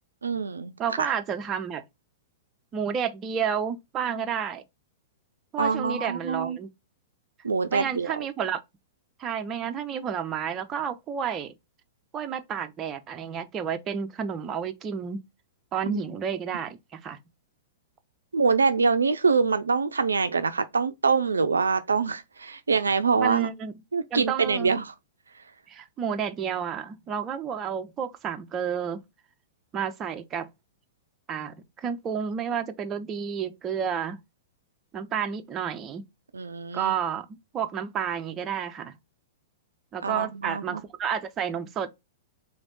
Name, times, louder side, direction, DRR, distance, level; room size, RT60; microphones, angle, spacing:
voice 1, 0.2-0.7 5.6-6.6 7.4-8.1 15.8-16.0 18.3-23.5 23.9-24.9 36.3-36.9 40.0-40.8, right 5 dB, 80° right, 0.4 m, -25 dB
voice 2, 0.8-1.8 2.7-4.6 5.5-6.7 7.7-8.6 9.2-11.5 12.1-15.2 15.7-17.2 23.2-23.7 24.1-24.7 25.7-29.0 29.7-30.5 31.3-34.2 34.9-36.0 36.7-38.9 39.9-42.0, right 7 dB, 25° right, 0.6 m, -31 dB
3.5 x 3.4 x 3.9 m
figure-of-eight pair, 105°, 0 cm